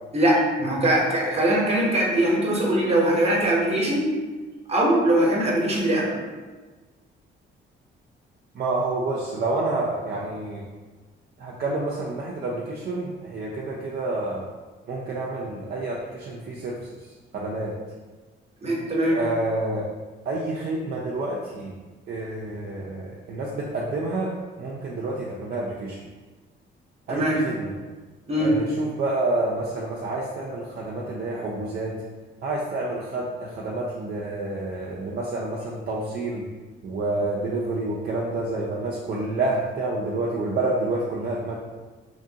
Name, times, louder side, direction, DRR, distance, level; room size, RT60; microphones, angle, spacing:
voice 1, 0.1-4.1 4.7-6.1 18.6-19.2 27.1-27.4 28.3-28.5, right 1 dB, 30° right, -3 dB, 0.9 m, -21 dB
voice 2, 8.5-10.6 11.4-14.4 14.9-17.7 19.1-19.9 20.2-21.8 22.1-24.3 24.6-26.0 27.1-27.7 28.3-31.9 32.4-36.4 36.8-41.5, right 2 dB, 55° right, -4 dB, 0.5 m, -28 dB
2.9 x 2.5 x 2.7 m, 1.3 s
cardioid pair, 90°, 20 cm